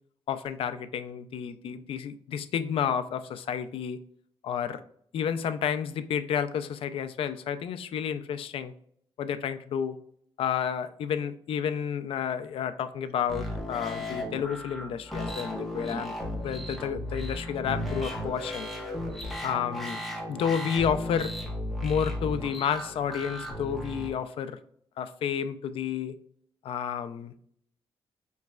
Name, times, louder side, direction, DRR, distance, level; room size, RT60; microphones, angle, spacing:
voice 1, 0.3-4.0 4.4-4.8 5.1-8.7 9.2-10.0 10.4-16.1 16.4-18.7 19.4-20.0 20.3-21.3 21.8-24.6 25.0-26.1 26.6-27.3, left 8 dB, 70° left, 10 dB, 0.4 m, -31 dB
sound 1, 13.3-24.1, left 1 dB, ahead, 0.8 m, -35 dB
4.7 x 3.1 x 2.3 m, 0.66 s
wide cardioid pair, 160°, 10 cm